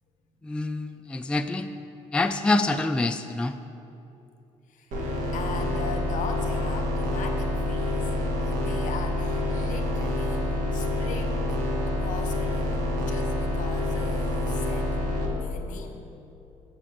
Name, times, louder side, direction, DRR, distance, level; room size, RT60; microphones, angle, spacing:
voice 1, 0.4-1.7 2.1-3.5, left 2 dB, 5° left, 7 dB, 0.4 m, -26 dB
sound 1, 4.9-15.3, left 1 dB, 75° right, 1.6 m, -27 dB
voice 2, 5.3-8.1 8.4-11.6 11.9-15.0 15.3-16.1, left 5 dB, 65° left, 4 dB, 1.1 m, -39 dB
7.3 x 6.0 x 6.9 m, 2.8 s
supercardioid pair, 80°, 14 cm